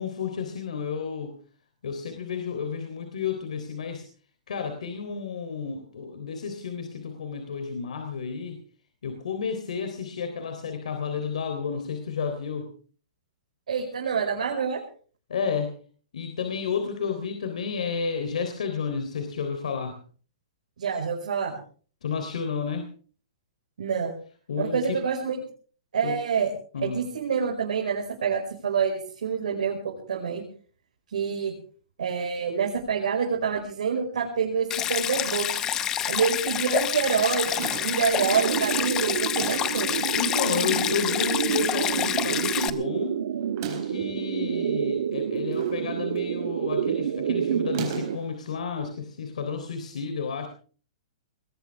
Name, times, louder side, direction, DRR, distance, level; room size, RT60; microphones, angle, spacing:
voice 1, 0.0-1.4 1.8-4.1 4.5-8.6 9.0-12.7 15.3-15.8 16.1-20.0 22.0-22.9 24.5-25.0 26.0-26.2 26.7-27.1 40.1-43.2 43.6-50.5, left 6 dB, 80° left, 5 dB, 3.5 m, -31 dB
voice 2, 13.7-14.8 20.8-21.6 23.8-24.1 24.6-25.4 25.9-26.5 26.8-30.4 31.1-31.5 32.0-35.7 36.1-39.9, right 6 dB, 90° right, -1 dB, 5.3 m, -27 dB
Stream, 34.7-42.7, left 10 dB, 15° left, 0.7 m, -28 dB
sound 1, 37.2-38.2 39.2-39.8 40.6-41.2 41.6-41.7 41.8-41.9 43.4-44.1 45.1-45.8 46.2-46.5 47.6-48.3, right 8 dB, 35° right, 4.3 m, -40 dB
sound 2, 38.2-48.2, right 9 dB, 70° right, 1.7 m, -28 dB
21.0 x 18.0 x 3.5 m, 0.42 s
hypercardioid pair, 175°, 4 cm